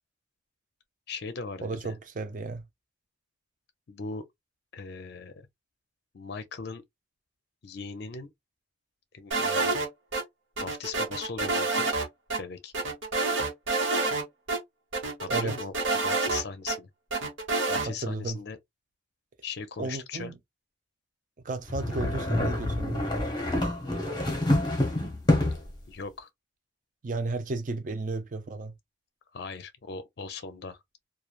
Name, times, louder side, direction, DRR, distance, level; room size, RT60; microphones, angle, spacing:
voice 1, 1.1-1.9 3.9-4.2 4.7-5.5 6.1-6.8 7.6-8.3 9.1-9.8 10.6-11.9 12.4-12.7 15.2-15.7 16.0-16.9 17.7-18.6 19.4-20.3 25.9-26.3 29.3-30.8, left 4 dB, 55° left, 0.5 m, -39 dB
voice 2, 1.6-2.6 15.3-15.5 17.9-18.4 19.8-20.3 21.4-23.1 27.0-28.7, right 3 dB, 40° right, 0.4 m, -33 dB
sound 1, 9.3-10.2 10.6-12.1 12.3-12.4 12.7-14.2 14.5-14.6 14.9-16.8 17.1-17.9, right 3 dB, 85° right, 1.1 m, -28 dB
sound 2, 21.7-25.7, left 1 dB, 20° left, 0.8 m, -27 dB
3.1 x 2.3 x 2.3 m
head